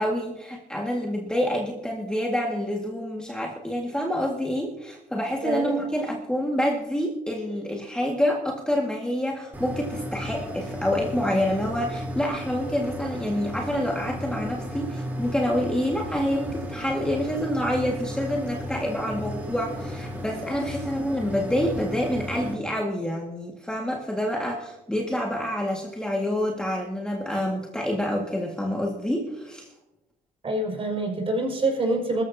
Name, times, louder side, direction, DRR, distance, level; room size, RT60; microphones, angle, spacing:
voice 1, 0.0-29.7, equal, 5° left, -1 dB, 1.9 m, -27 dB
voice 2, 5.4-5.8 30.4-32.2, right 2 dB, 35° right, 1 dB, 5.5 m, -26 dB
sound 1, 9.5-22.5, equal, 10° right, 3.5 m, -35 dB
23.0 x 14.0 x 2.8 m, 0.91 s
cardioid pair, 110°, 17 cm